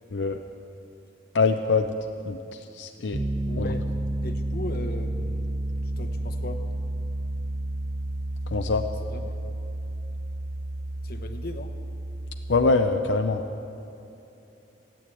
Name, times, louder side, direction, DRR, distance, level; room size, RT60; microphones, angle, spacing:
voice 1, 1.3-1.9 2.3-3.2 3.6-3.7 8.5-8.9 12.5-13.4, left 4 dB, 85° left, 5 dB, 0.6 m, -24 dB
Piano, 3.1-12.7, right 1 dB, 20° right, 0.5 m, -31 dB
voice 2, 3.4-3.9 4.2-6.7 9.0-9.3 11.0-11.8, left 2 dB, 60° left, 6 dB, 1.1 m, -38 dB
15.5 x 9.4 x 8.4 m, 2.9 s
head